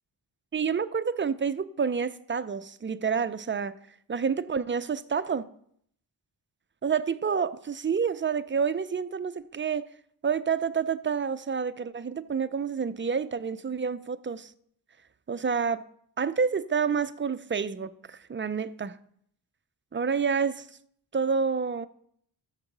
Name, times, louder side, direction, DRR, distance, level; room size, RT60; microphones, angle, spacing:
voice 1, 0.5-3.8 4.1-5.5 6.8-9.9 10.2-14.5 15.3-15.8 16.2-19.0 19.9-20.7 21.1-21.9, right 6 dB, 25° right, 0.5 m, -28 dB
13.0 x 4.7 x 6.7 m
wide cardioid pair, 90°, 44 cm